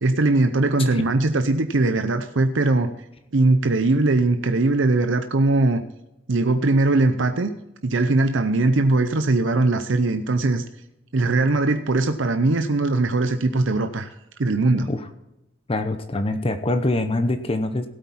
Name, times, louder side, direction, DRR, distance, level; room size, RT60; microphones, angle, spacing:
voice 1, 0.0-2.9 3.3-5.8 6.3-7.5 7.8-10.6 11.1-14.1 14.4-14.9, right 2 dB, 70° right, 8 dB, 0.7 m, -20 dB
voice 2, 15.7-17.9, left 2 dB, 30° left, 9 dB, 0.8 m, -24 dB
17.0 x 8.4 x 4.2 m, 0.92 s
head